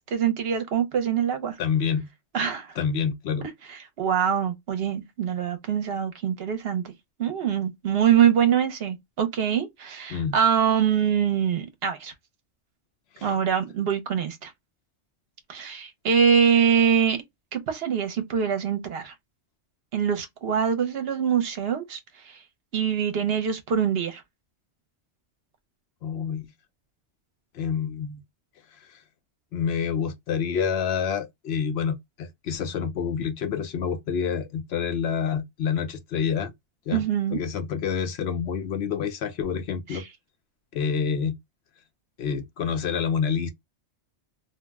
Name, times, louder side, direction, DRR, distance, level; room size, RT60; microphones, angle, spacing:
voice 1, 0.1-1.6 2.3-2.7 4.0-6.9 7.2-12.1 13.2-14.5 15.5-17.2 17.5-19.1 19.9-22.0 22.2-22.4 22.7-24.2 36.9-37.4 39.9-40.0, right 8 dB, 65° right, 0.8 m, -24 dB
voice 2, 1.6-2.1 2.8-3.5 10.1-10.4 13.2-13.3 26.0-26.5 27.5-28.2 28.8-29.0 29.5-36.5 36.9-37.0 37.3-40.0 40.7-41.4 42.2-43.5, left 7 dB, 70° left, 0.8 m, -28 dB
2.5 x 2.0 x 3.3 m
omnidirectional pair, 1.2 m